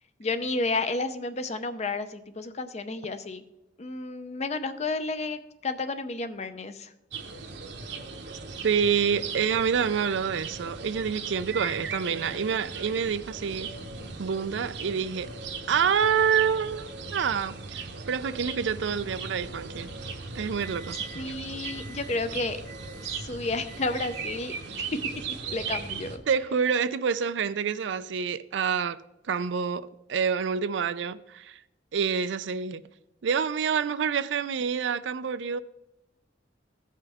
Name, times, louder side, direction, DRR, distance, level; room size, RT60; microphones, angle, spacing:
voice 1, 0.2-3.4 3.8-6.9 21.1-22.6 23.2-25.0 25.5-26.2, left 3 dB, 35° left, 0.6 m, -31 dB
sound 1, 7.1-26.2, right 4 dB, 70° right, 0.9 m, -38 dB
voice 2, 8.6-13.7 14.2-15.3 15.7-19.9 20.3-21.0 26.3-29.0 29.3-31.6 31.9-32.9 33.2-35.6, right 6 dB, 85° right, 0.4 m, -27 dB
Microwave oven, 18.7-21.3 21.6-22.2 22.6-23.2 23.7-24.3, right 2 dB, 80° left, 2.7 m, -48 dB
16.0 x 5.6 x 3.5 m
head